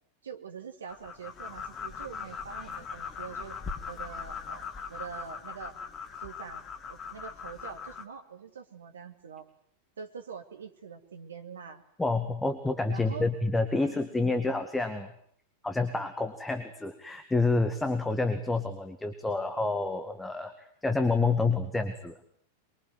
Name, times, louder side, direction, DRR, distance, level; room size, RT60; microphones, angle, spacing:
voice 1, 0.2-3.6 3.9-5.7 6.2-9.5 10.0-11.8 12.9-13.3 13.8-14.1, right 6 dB, 70° right, 6 dB, 2.4 m, -44 dB
sound 1, 0.9-8.0, left 6 dB, 25° left, 2.7 m, -40 dB
voice 2, 12.0-15.1 15.6-22.1, left 3 dB, 10° left, 8 dB, 2.0 m, -28 dB
24.0 x 23.5 x 9.3 m, 0.63 s
figure-of-eight pair, 90°, 0 cm